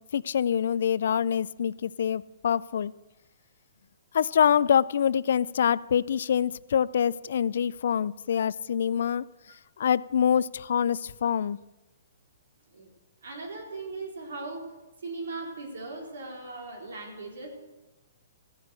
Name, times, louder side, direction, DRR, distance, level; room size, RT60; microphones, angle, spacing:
voice 1, 0.0-2.9 4.1-9.2 9.8-11.6, left 8 dB, 65° left, 21 dB, 0.4 m, -25 dB
voice 2, 13.2-14.7 15.0-17.5, right 3 dB, 80° right, 0 dB, 4.1 m, -38 dB
15.0 x 8.2 x 7.7 m, 1.0 s
hypercardioid pair, 150°, 0 cm